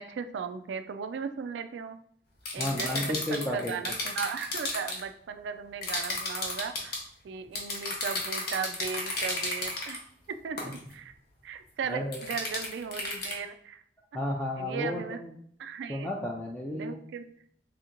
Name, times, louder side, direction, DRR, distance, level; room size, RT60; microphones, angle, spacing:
voice 1, 0.0-2.0 2.5-7.0 7.2-10.0 10.3-11.1 11.4-13.8 14.6-15.2 15.6-16.1 16.7-17.2, right 6 dB, 75° right, 9 dB, 0.3 m, -37 dB
sound 1, 2.5-5.0 5.8-7.0 7.6-10.0 10.6-10.8 12.1-13.4, left 2 dB, 60° left, 0.9 m, -33 dB
voice 2, 2.6-3.7 10.6-10.7 11.9-12.2 14.1-15.3 15.9-17.0, left 1 dB, 5° left, -3 dB, 0.4 m, -32 dB
3.4 x 2.9 x 3.7 m, 0.64 s
head